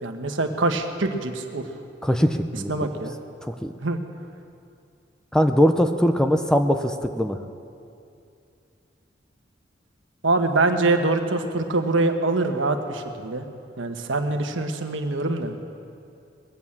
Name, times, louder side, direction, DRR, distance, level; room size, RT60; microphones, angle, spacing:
voice 1, 0.0-1.7 2.7-3.1 3.8-4.0 10.2-13.4 13.8-15.5, right 2 dB, 85° right, 5 dB, 1.2 m, -24 dB
voice 2, 2.0-2.7 3.4-3.7 5.3-7.4, equal, 5° left, 6 dB, 0.5 m, -21 dB
20.5 x 8.8 x 7.2 m, 2.6 s
head